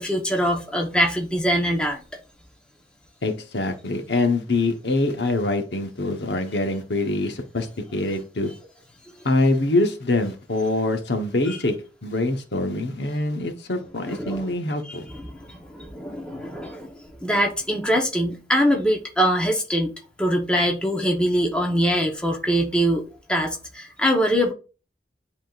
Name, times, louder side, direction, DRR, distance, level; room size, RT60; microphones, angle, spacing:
voice 1, 0.0-2.0 11.5-11.6 14.1-14.5 14.9-19.9 20.2-24.5, equal, 5° left, 1.0 m, -23 dB
voice 2, 3.2-8.5 9.2-11.7 12.0-15.1, left 2 dB, 75° left, 1.0 m, -24 dB
10.0 x 3.7 x 2.5 m
head